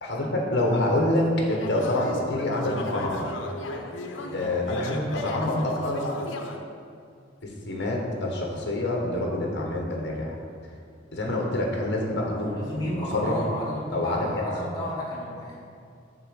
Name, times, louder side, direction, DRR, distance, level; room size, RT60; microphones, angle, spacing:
voice 1, 0.0-3.2 4.3-6.0 7.7-10.4 11.1-12.5 13.0-13.4 13.9-14.4, left 1 dB, 60° left, 0 dB, 1.1 m, -26 dB
sound 1, 0.9-6.6, left 2 dB, 75° left, 0.7 m, -36 dB
voice 2, 12.3-15.6, left 1 dB, 20° left, -8 dB, 1.7 m, -32 dB
6.7 x 3.7 x 6.3 m, 2.4 s
head